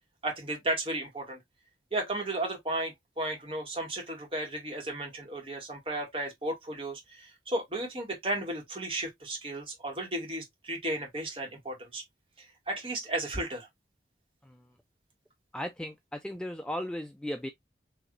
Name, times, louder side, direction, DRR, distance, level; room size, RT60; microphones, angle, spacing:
voice 1, 0.2-1.4 1.9-12.0 12.4-13.7, right 1 dB, 30° right, 1.8 m, -34 dB
voice 2, 15.5-17.5, left 1 dB, 5° left, 0.3 m, -36 dB
4.7 x 3.0 x 2.5 m
head